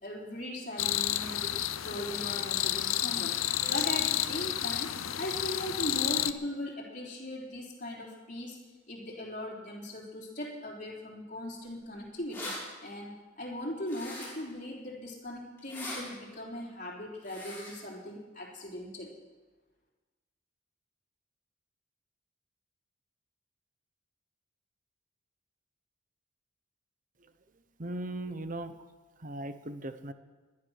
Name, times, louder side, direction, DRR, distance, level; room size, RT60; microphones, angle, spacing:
voice 1, 0.0-1.5 1.8-3.4 3.7-4.9 5.2-8.6 8.9-12.5 12.8-19.1, left 1 dB, 40° left, -4 dB, 3.5 m, -39 dB
sound 1, 0.8-6.3, left 12 dB, 80° left, 0.7 m, -31 dB
sound 2, 11.8-11.9 12.1-12.6 13.9-14.5 15.6-16.0 17.2-17.7, left 2 dB, 10° left, 6.6 m, -41 dB
voice 2, 27.8-28.7 29.2-30.1, right 1 dB, 40° right, 11 dB, 0.9 m, -38 dB
19.5 x 11.0 x 6.4 m, 1.3 s
head